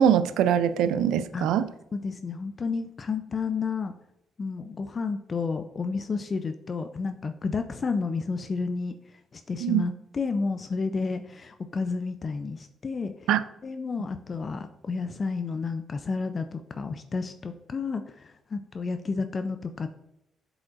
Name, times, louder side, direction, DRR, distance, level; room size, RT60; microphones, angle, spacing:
voice 1, 0.0-1.7 9.6-9.8 13.3-13.4, right 9 dB, 85° right, 14 dB, 0.3 m, -22 dB
voice 2, 1.9-3.9 4.4-8.9 9.3-13.1 13.6-19.9, left 4 dB, 40° left, 8 dB, 0.4 m, -31 dB
7.6 x 4.9 x 2.5 m, 0.83 s
cardioid pair, 90°, 0 cm